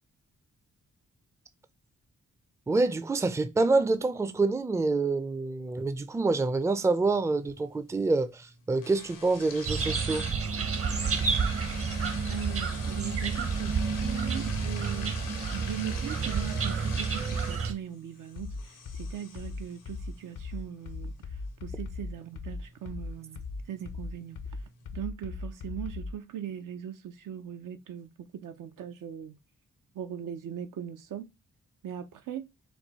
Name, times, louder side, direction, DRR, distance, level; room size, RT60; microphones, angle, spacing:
voice 1, 2.7-10.3, right 3 dB, 10° right, 0.4 m, -27 dB
sound 1, 7.0-25.0, left 5 dB, 90° left, 1.1 m, -46 dB
sound 2, 9.7-17.7, right 5 dB, 45° right, 0.8 m, -30 dB
voice 2, 12.3-15.2 15.5-21.1 21.6-24.4 24.9-29.3 29.9-31.3 31.8-32.5, right 10 dB, 75° right, 0.6 m, -40 dB
sound 3, 18.4-26.2, left 3 dB, 75° left, 0.7 m, -38 dB
4.6 x 2.3 x 3.9 m
cardioid pair, 70°, 32 cm